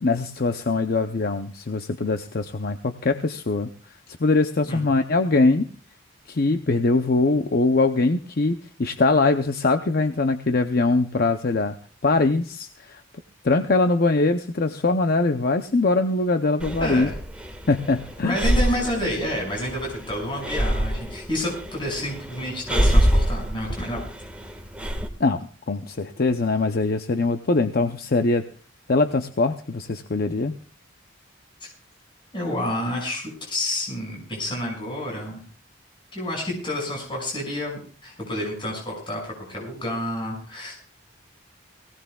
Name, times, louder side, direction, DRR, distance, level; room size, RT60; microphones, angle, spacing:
voice 1, 0.0-3.7 4.1-5.7 6.3-11.8 12.0-13.0 13.4-17.1 17.7-18.4 25.2-28.4 28.9-30.5, left 3 dB, 50° left, 8 dB, 0.6 m, -22 dB
Breathing, 16.6-25.1, equal, 5° right, 1.6 m, -25 dB
voice 2, 16.8-17.1 18.2-24.0 31.6-31.7 32.3-35.4 36.1-40.7, left 1 dB, 25° left, -2 dB, 6.1 m, -29 dB
22.0 x 17.0 x 2.3 m, 0.40 s
head